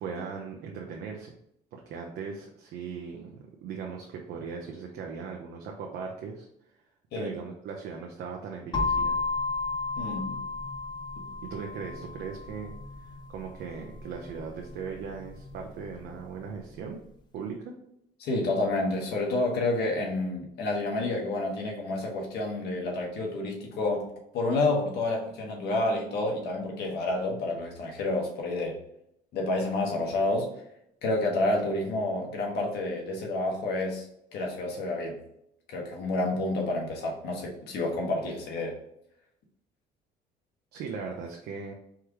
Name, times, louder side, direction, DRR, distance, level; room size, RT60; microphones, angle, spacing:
voice 1, 0.0-1.3 1.7-6.5 7.1-9.2 11.4-17.0 17.3-17.7 40.7-41.7, right 5 dB, 75° right, 0 dB, 0.8 m, -38 dB
sound 1, 8.7-16.6, left 3 dB, 25° left, 0.8 m, -34 dB
voice 2, 10.0-10.4 18.2-24.1 24.3-28.8 29.3-30.5 31.0-34.1 34.3-35.2 35.7-38.7, left 2 dB, 75° left, 0 dB, 1.5 m, -29 dB
4.7 x 3.1 x 3.5 m, 0.75 s
cardioid pair, 110°, 17 cm